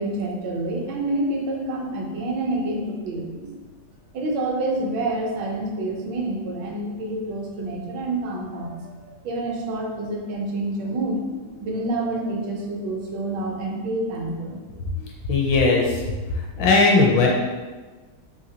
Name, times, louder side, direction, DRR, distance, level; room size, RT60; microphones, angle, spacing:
voice 1, 0.0-3.5 4.1-14.6 15.0-15.1, right 2 dB, 75° right, 0 dB, 1.2 m, -28 dB
voice 2, 15.3-16.0 16.6-17.3, left 3 dB, 75° left, -1 dB, 1.2 m, -17 dB
4.0 x 2.8 x 2.7 m, 1.3 s
omnidirectional pair, 2.2 m